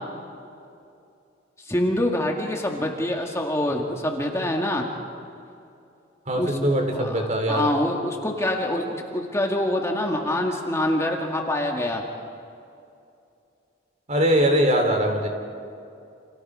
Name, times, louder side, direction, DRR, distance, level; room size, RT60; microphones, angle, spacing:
voice 1, 1.7-4.9 6.4-6.5 6.9-7.1 7.5-12.0, left 1 dB, 15° left, 0 dB, 2.0 m, -25 dB
voice 2, 6.3-7.7 14.1-15.3, equal, 40° right, 3 dB, 3.4 m, -21 dB
29.5 x 28.0 x 4.9 m, 2.5 s
head